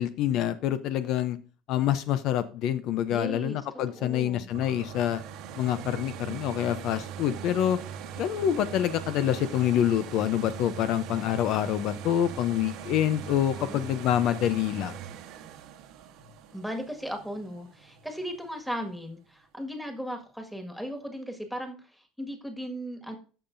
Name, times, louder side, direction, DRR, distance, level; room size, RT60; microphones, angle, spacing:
voice 1, 0.0-1.4 1.7-5.2 5.6-7.8 8.2-15.0, left 11 dB, 55° left, 12 dB, 0.6 m, -26 dB
voice 2, 3.1-3.6 3.9-4.5 13.5-13.8 16.5-23.2, equal, ahead, 5 dB, 1.7 m, -37 dB
sound 1, 4.5-18.2 18.7-18.8, right 8 dB, 65° right, 1.1 m, -41 dB
13.5 x 5.6 x 2.6 m, 0.37 s
cardioid pair, 135°, 0 cm